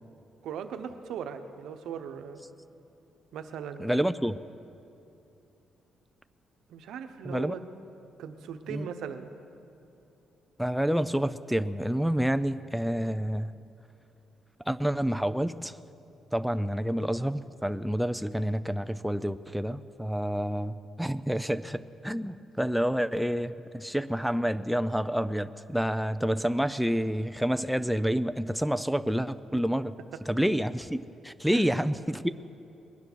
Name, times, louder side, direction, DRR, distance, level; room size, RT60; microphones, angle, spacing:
voice 1, 0.4-2.4 3.3-4.1 6.7-7.6 8.2-9.3 31.5-31.7, right 8 dB, 80° right, 8 dB, 1.0 m, -39 dB
voice 2, 3.8-4.4 7.2-7.6 8.7-8.9 10.6-13.5 14.7-15.8 16.3-29.9 30.3-32.3, equal, ahead, 12 dB, 0.4 m, -28 dB
21.5 x 9.7 x 6.1 m, 2.7 s
cardioid pair, 115°, 0 cm